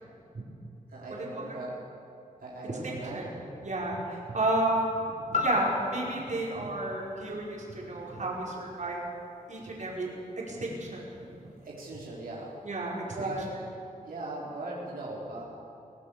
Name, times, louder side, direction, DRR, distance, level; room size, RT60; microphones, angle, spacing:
voice 1, 0.9-1.8 2.4-3.5 11.6-12.5 13.1-13.5 14.0-15.4, right 2 dB, 85° right, -5 dB, 4.5 m, -38 dB
voice 2, 2.6-3.3 3.6-9.0 9.5-10.1 10.4-11.0 12.6-13.3, right 2 dB, 55° right, -3 dB, 5.2 m, -32 dB
sound 1, 5.3-9.4 9.9-10.0, left 4 dB, 55° left, 3.7 m, -36 dB
23.5 x 17.0 x 6.9 m, 2.8 s
wide cardioid pair, 80°, 15 cm